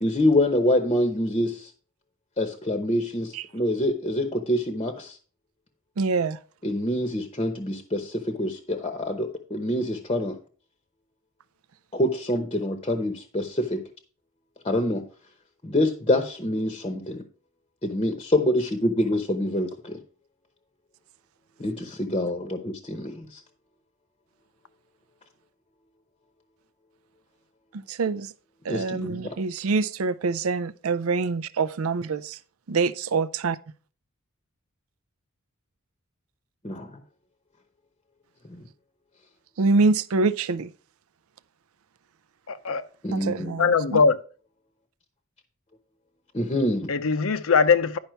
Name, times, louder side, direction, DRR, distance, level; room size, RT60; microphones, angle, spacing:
voice 1, 0.0-1.7 2.4-5.2 6.6-10.3 11.9-13.8 14.6-15.0 15.6-17.2 17.8-20.0 21.6-23.4 28.7-29.4 36.6-36.9 38.5-38.6 43.0-43.6 46.3-46.9, left 1 dB, 25° left, 0.8 m, -26 dB
voice 2, 6.0-6.4 27.9-28.3 28.7-32.4 32.7-33.6 39.6-40.7 43.1-44.0, right 4 dB, 75° right, 0.5 m, -25 dB
voice 3, 42.5-42.8 43.6-44.2 46.9-48.0, left 5 dB, 65° left, 0.6 m, -21 dB
10.5 x 5.5 x 4.5 m
head